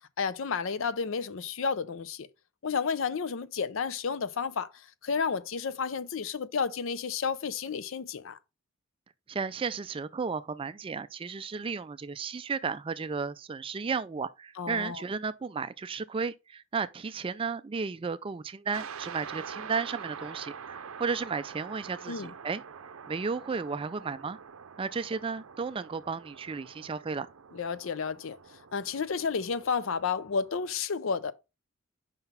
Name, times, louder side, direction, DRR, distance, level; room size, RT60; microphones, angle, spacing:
voice 1, 0.2-2.3 2.6-4.7 5.0-8.4 14.6-15.0 22.1-22.3 27.5-28.4 28.7-31.3, left 5 dB, 65° left, 0.5 m, -31 dB
voice 2, 9.3-22.6 23.1-24.4 24.8-27.3, right 5 dB, 25° right, 0.3 m, -34 dB
sound 1, 18.7-30.8, right 6 dB, 75° right, 0.6 m, -45 dB
5.3 x 4.0 x 5.5 m
head